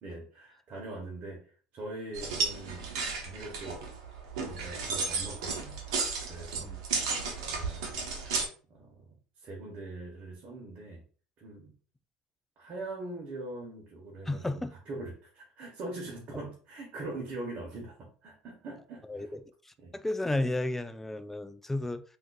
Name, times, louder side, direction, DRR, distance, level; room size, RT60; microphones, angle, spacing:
voice 1, 0.0-2.9 3.2-3.9 4.4-5.8 6.2-6.7 7.4-8.0 8.7-11.0 11.4-11.7 12.6-19.3 19.8-20.0, right 2 dB, 50° right, 1.0 m, -42 dB
sound 1, 2.1-8.5, right 4 dB, 85° right, 0.8 m, -33 dB
voice 2, 14.3-14.7 19.1-22.0, left 2 dB, 10° left, 0.3 m, -33 dB
3.7 x 2.6 x 2.2 m
supercardioid pair, 90°, 3 cm